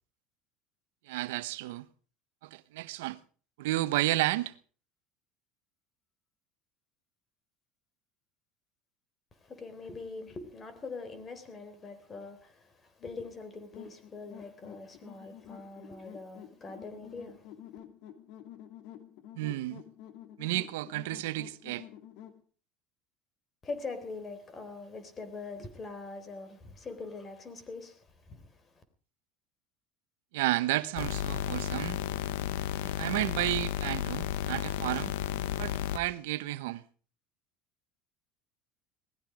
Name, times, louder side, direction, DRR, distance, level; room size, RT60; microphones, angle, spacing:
voice 1, 1.1-1.9 2.4-3.2 3.6-4.5 19.4-19.8 20.4-21.8 30.3-32.0 32.9-35.1 35.6-36.8, right 17 dB, 85° right, 1.0 m, -32 dB
voice 2, 9.3-17.5 23.6-28.8, left 3 dB, 25° left, 3.8 m, -43 dB
sound 1, 13.7-22.4, left 11 dB, 65° left, 2.6 m, -49 dB
sound 2, 31.0-36.0, left 12 dB, 85° left, 0.9 m, -33 dB
19.0 x 15.0 x 5.0 m
supercardioid pair, 120°, 0 cm